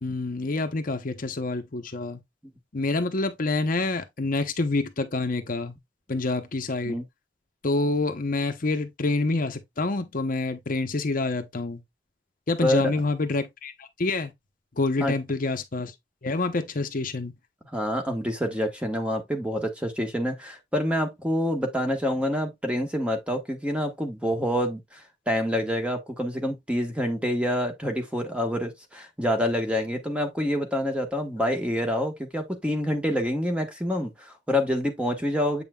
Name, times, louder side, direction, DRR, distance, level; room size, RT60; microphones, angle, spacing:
voice 1, 0.0-2.2 2.7-5.7 6.1-7.0 7.6-11.8 12.5-14.3 14.8-15.9 16.2-17.3, left 3 dB, 50° left, 0.8 m, -27 dB
voice 2, 12.6-12.9 15.0-15.1 17.7-25.0 25.3-35.6, equal, 5° right, 1.3 m, -27 dB
7.9 x 5.5 x 2.3 m
head